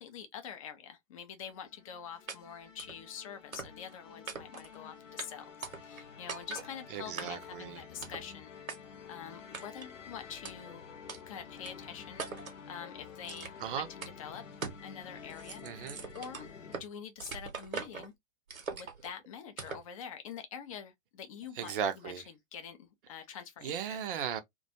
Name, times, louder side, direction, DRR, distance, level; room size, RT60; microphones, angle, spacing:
voice 1, 0.0-5.4 5.8-8.5 9.1-10.8 11.2-14.4 14.8-15.6 16.1-18.1 18.7-24.0, left 8 dB, 25° left, 0.4 m, -46 dB
sound 1, 1.5-16.8, left 6 dB, 65° left, 0.7 m, -50 dB
sound 2, 2.3-2.4 2.8-3.0 3.5-3.9 4.3-4.7 5.2-5.3 5.6-6.0 6.3-6.7 7.2-7.5 8.0-8.3 8.7-8.8 9.5-9.9 10.4-10.5 11.1-11.2 11.6-11.7 12.2-12.6 13.2-13.7 14.0-14.1 14.6-14.9 15.2-16.9 17.2-18.1 18.5-19.1 19.6-19.9, right 5 dB, 80° right, 0.8 m, -42 dB
voice 2, 6.9-7.8 13.6-13.9 15.6-16.0 21.6-22.2 23.6-24.4, right 8 dB, 40° right, 0.5 m, -36 dB
2.3 x 2.2 x 2.6 m
figure-of-eight pair, 105°, 41 cm